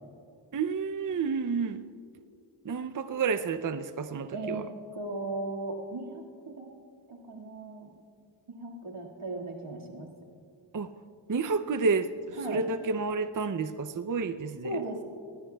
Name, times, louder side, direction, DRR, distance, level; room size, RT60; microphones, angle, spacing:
voice 1, 0.5-1.8 2.6-4.7 10.7-10.9 11.3-14.8, right 4 dB, 40° right, 10 dB, 0.5 m, -30 dB
voice 2, 4.3-4.7 4.9-6.7 7.1-8.0 8.5-10.1 12.4-12.6 14.6-15.0, right 2 dB, 85° right, 0 dB, 2.0 m, -37 dB
22.0 x 17.5 x 2.3 m, 2.5 s
wide cardioid pair, 45°, 49 cm